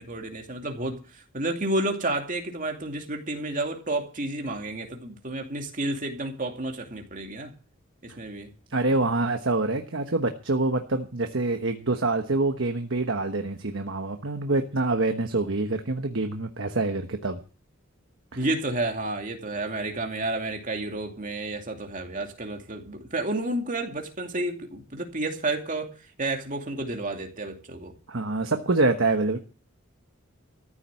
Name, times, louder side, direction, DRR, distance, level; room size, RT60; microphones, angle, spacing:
voice 1, 0.0-7.5 8.0-8.5 18.3-25.9 26.2-27.9, right 2 dB, 40° right, 2.6 m, -31 dB
voice 2, 8.7-17.4 28.1-29.4, right 2 dB, 60° right, 1.2 m, -26 dB
14.5 x 7.4 x 8.3 m
head